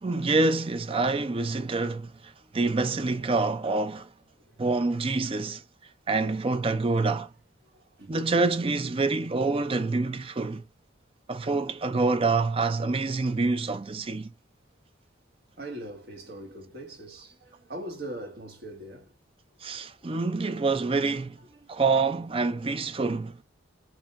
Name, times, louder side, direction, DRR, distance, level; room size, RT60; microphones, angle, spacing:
voice 1, 0.0-4.1 4.6-5.6 6.1-7.3 8.1-10.6 11.3-14.3 19.6-21.4 21.7-23.4, right 3 dB, 30° right, 0.5 m, -26 dB
voice 2, 7.6-8.3 15.6-19.1 19.7-19.9 21.5-21.7, right 1 dB, 55° right, 1.7 m, -41 dB
5.1 x 2.7 x 2.5 m
head